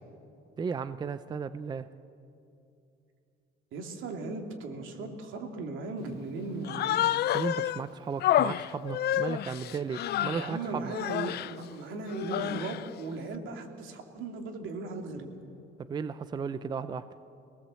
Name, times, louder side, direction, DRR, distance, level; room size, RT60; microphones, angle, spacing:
voice 1, 0.6-1.9 7.3-11.0 15.9-17.1, right 5 dB, 20° right, 13 dB, 0.5 m, -35 dB
voice 2, 3.7-7.0 10.3-15.3, right 3 dB, 70° right, 3 dB, 2.7 m, -37 dB
Human voice, 6.6-7.8 8.2-10.5 10.9-11.5 12.1-12.9, left 12 dB, 50° left, 0.5 m, -29 dB
25.0 x 18.5 x 7.6 m, 2.6 s
cardioid pair, 160°, 21 cm